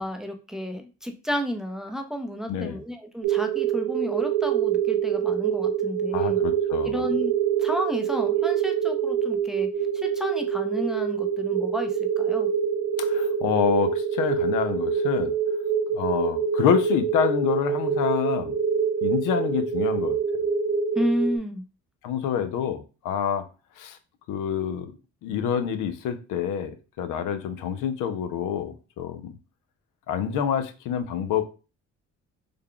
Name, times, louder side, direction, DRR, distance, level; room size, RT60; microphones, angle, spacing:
voice 1, 0.0-6.4 6.8-7.3 7.6-9.7 9.9-12.5 20.9-21.6, equal, ahead, 0.5 m, -31 dB
voice 2, 2.5-2.8 6.1-7.0 13.0-15.3 15.9-18.6 19.0-20.2 22.0-23.4 23.8-24.0 24.3-25.0 25.2-29.4 30.1-31.4, left 8 dB, 90° left, 0.6 m, -27 dB
sound 1, 3.2-21.4, right 7 dB, 85° right, 0.7 m, -25 dB
3.4 x 2.3 x 3.7 m
cardioid pair, 90°, 30 cm